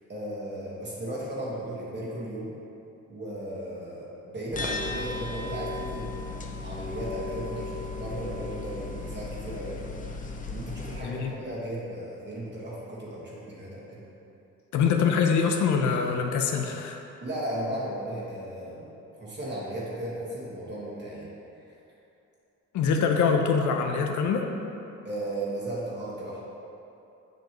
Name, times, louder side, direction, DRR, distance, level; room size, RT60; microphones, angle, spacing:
voice 1, 0.1-2.5 3.1-9.9 10.5-14.0 17.2-18.9 19.2-21.3 25.0-26.4, right 1 dB, 35° right, -7 dB, 1.5 m, -35 dB
sound 1, 4.5-11.0, left 3 dB, 25° left, 0.6 m, -35 dB
voice 2, 14.7-17.0 22.7-24.4, left 6 dB, 75° left, 3 dB, 0.6 m, -24 dB
7.5 x 5.3 x 3.0 m, 2.8 s
cardioid pair, 90°, 30 cm